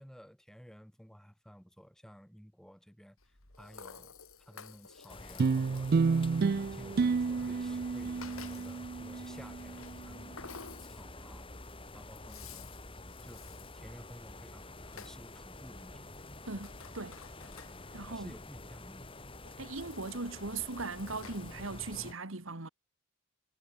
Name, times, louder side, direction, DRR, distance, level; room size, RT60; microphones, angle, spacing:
voice 1, 0.0-3.2 3.6-4.1 4.5-6.1 6.4-10.4 10.8-12.7 13.2-16.1 17.9-19.1, equal, 5° left, 6.7 m, -54 dB
Rattle (instrument), 3.2-22.2, left 6 dB, 85° left, 4.4 m, -55 dB
sound 1, 5.1-22.1, left 2 dB, 25° left, 4.4 m, -48 dB
sound 2, 5.4-10.0, right 4 dB, 45° right, 0.4 m, -30 dB
voice 2, 16.5-17.2 17.9-18.3 19.6-22.7, right 3 dB, 70° right, 2.1 m, -39 dB
head